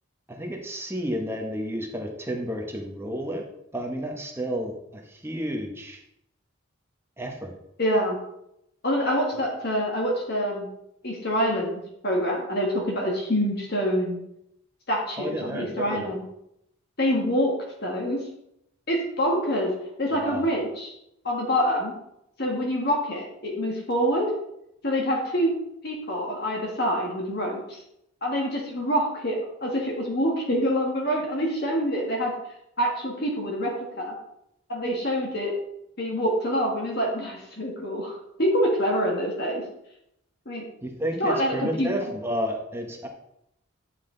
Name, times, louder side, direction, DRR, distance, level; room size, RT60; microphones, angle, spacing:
voice 1, 0.3-3.5 3.7-6.0 7.2-7.6 15.2-16.1 20.1-20.5 40.8-43.1, equal, 10° right, 2 dB, 1.1 m, -31 dB
voice 2, 7.8-8.2 8.8-10.7 11.0-14.2 14.9-16.2 17.0-17.5 17.8-18.2 18.9-19.7 20.0-20.9 21.2-21.9 22.4-24.3 24.8-25.5 25.8-27.8 28.2-32.3 32.8-33.7 34.0-34.1 34.7-35.5 36.0-39.6 40.5-40.7 41.2-41.9, equal, 50° left, -1 dB, 1.7 m, -26 dB
9.8 x 5.8 x 3.9 m, 0.80 s
head